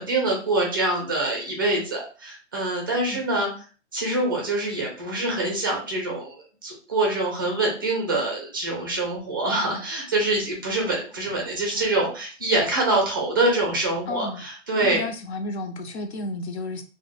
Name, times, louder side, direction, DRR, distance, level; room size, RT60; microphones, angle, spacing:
voice 1, 0.0-3.5 3.9-15.0, right 2 dB, 20° right, 0.4 m, -25 dB
voice 2, 2.9-3.3 14.1-14.4 14.8-16.8, left 2 dB, 60° left, 0.5 m, -32 dB
2.1 x 2.1 x 3.1 m
hypercardioid pair, 150°, 38 cm